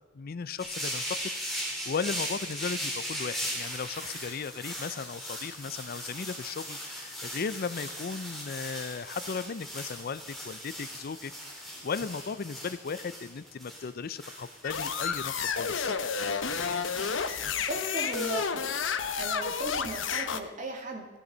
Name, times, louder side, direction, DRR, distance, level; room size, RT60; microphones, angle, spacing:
voice 1, 0.1-16.0, left 5 dB, 50° left, 16 dB, 0.5 m, -36 dB
sound 1, 0.6-18.4, equal, ahead, 4.1 m, -39 dB
sound 2, 14.6-20.4, left 6 dB, 75° left, 0.9 m, -31 dB
voice 2, 17.7-18.7 19.2-21.1, right 1 dB, 40° right, 1 dB, 2.6 m, -36 dB
13.5 x 13.0 x 5.5 m, 1.3 s
head